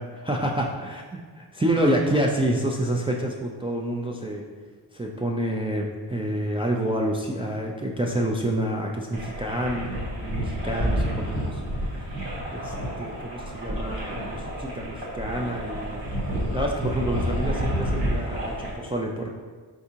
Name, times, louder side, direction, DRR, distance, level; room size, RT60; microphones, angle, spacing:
voice 1, 0.3-4.5 4.9-11.6 12.5-16.0 16.5-19.3, right 1 dB, 15° right, -1 dB, 0.3 m, -28 dB
sound 1, 9.1-18.7, equal, 85° right, 1.2 m, -29 dB
4.7 x 3.5 x 2.8 m, 1.5 s
cardioid pair, 75°, 44 cm